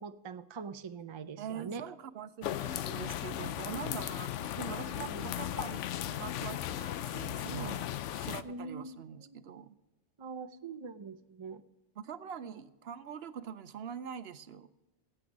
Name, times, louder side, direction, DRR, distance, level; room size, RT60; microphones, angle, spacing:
voice 1, 0.0-1.9 4.9-5.3 7.5-7.8 8.4-9.5 10.2-11.6 12.4-12.5, right 4 dB, 40° right, 10 dB, 0.4 m, -43 dB
voice 2, 1.4-7.8 8.1-9.7 12.0-14.7, right 8 dB, 65° right, 13 dB, 0.8 m, -44 dB
sound 1, 2.4-8.4, left 12 dB, 80° left, 0.9 m, -36 dB
17.0 x 7.7 x 5.2 m, 1.0 s
omnidirectional pair, 1.2 m